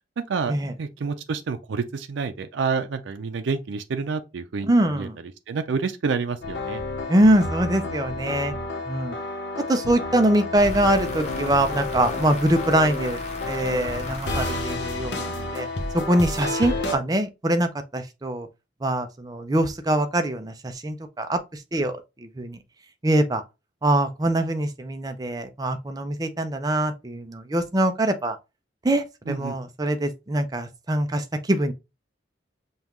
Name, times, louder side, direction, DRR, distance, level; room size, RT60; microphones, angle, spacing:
voice 1, 0.2-5.1 5.5-6.8 29.3-29.6, right 5 dB, 85° right, 0.4 m, -28 dB
voice 2, 4.7-5.2 7.1-8.5 8.9-9.2 9.7-13.2 13.5-15.7 15.9-18.5 18.8-21.4 21.7-22.6 23.0-23.4 23.8-28.4 28.8-31.7, right 1 dB, 20° right, 0.4 m, -23 dB
sound 1, 6.4-16.9, left 2 dB, 75° left, 0.9 m, -31 dB
sound 2, 10.6-15.5, left 1 dB, 35° left, 1.0 m, -37 dB
5.4 x 2.4 x 3.0 m
head